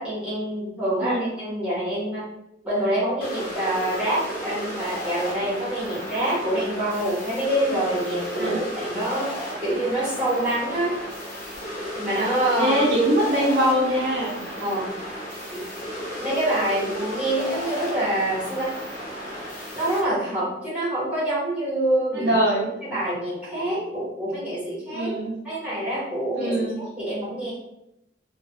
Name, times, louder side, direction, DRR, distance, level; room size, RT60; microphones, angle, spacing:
voice 1, 0.0-2.3 2.6-9.3 9.6-11.0 12.0-12.8 14.6-14.9 15.5-15.6 16.2-18.8 19.7-22.3 22.8-25.1 25.4-26.5 27.0-27.5, right 1 dB, 5° right, -8 dB, 1.0 m, -26 dB
sound 1, 3.2-20.0, equal, 50° left, 0.7 m, -34 dB
voice 2, 12.6-14.4 22.1-22.7 24.9-25.3 26.3-26.8, right 1 dB, 65° right, -3 dB, 0.5 m, -22 dB
2.3 x 2.2 x 2.6 m, 0.84 s
head